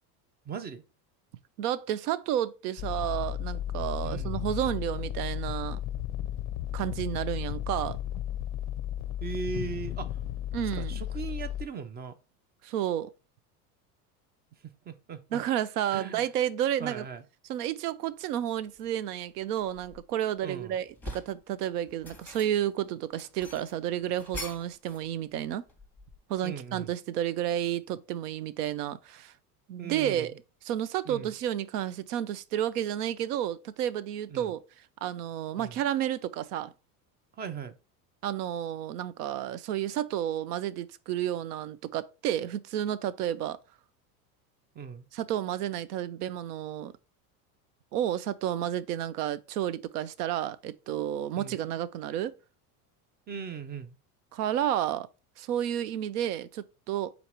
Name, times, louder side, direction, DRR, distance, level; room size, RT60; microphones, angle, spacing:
voice 1, 0.5-0.8 4.0-4.3 9.2-10.2 10.7-12.2 14.6-15.4 15.9-16.2 16.8-17.2 20.4-20.8 26.4-26.9 29.8-30.3 31.1-31.3 34.3-34.5 35.6-35.8 37.4-37.7 44.8-45.1 51.4-51.6 53.3-54.0, right 6 dB, 25° right, 0.4 m, -38 dB
voice 2, 1.6-5.8 6.7-8.0 10.5-11.0 12.6-13.1 15.3-17.1 17.5-25.6 26.3-29.3 29.7-30.3 30.6-34.6 35.0-36.7 38.2-43.6 45.1-46.9 47.9-52.3 54.3-55.1 55.4-57.1, right 11 dB, 85° right, 0.6 m, -31 dB
sound 1, 2.8-11.7, left 12 dB, 45° left, 0.4 m, -34 dB
sound 2, 18.7-18.9 19.4-20.4 20.8-21.4 21.9-22.7 23.1-25.1 25.3-26.4, left 1 dB, 5° left, 0.9 m, -43 dB
4.1 x 2.8 x 4.6 m
hypercardioid pair, 90°, 45 cm